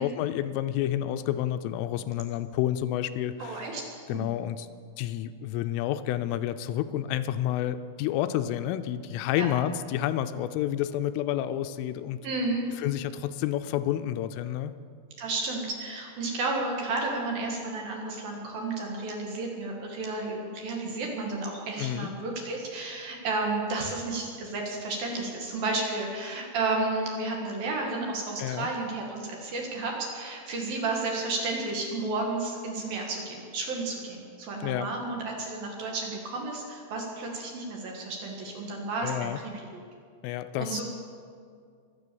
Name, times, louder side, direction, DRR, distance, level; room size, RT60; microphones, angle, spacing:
voice 1, 0.0-3.7 4.1-4.7 5.0-12.2 12.8-14.7 21.8-22.1 28.4-28.7 34.6-34.9 39.0-39.4 40.2-40.8, left 12 dB, 85° left, 11 dB, 3.2 m, -29 dB
voice 2, 3.4-3.8 4.1-4.3 9.4-9.5 12.2-12.6 15.2-39.9 40.6-40.8, right 3 dB, 60° right, 0 dB, 3.1 m, -32 dB
23.0 x 8.3 x 6.9 m, 2.2 s
omnidirectional pair, 5.7 m